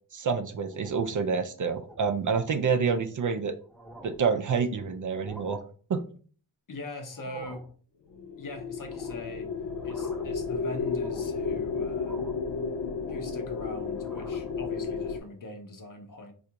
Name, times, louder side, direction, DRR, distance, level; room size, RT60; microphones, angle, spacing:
voice 1, 0.1-3.5 4.0-5.6 5.9-6.0, right 5 dB, 45° right, 7 dB, 0.4 m, -27 dB
sound 1, 0.7-1.3 1.7-2.0 2.4-2.6 3.2-3.3 3.6-4.3 5.1-5.6 7.0-7.7 8.8-9.3 9.7-10.4 10.8-11.4 12.0-12.5 12.8-13.5 13.9-14.6, right 1 dB, ahead, 0.6 m, -48 dB
voice 2, 6.7-7.6 8.4-9.5 9.8-12.2 13.1-16.3, left 2 dB, 45° left, 5 dB, 0.8 m, -41 dB
sound 2, 8.1-15.2, left 5 dB, 70° left, 0.5 m, -32 dB
3.3 x 2.5 x 2.8 m, 0.42 s
cardioid pair, 70°, 44 cm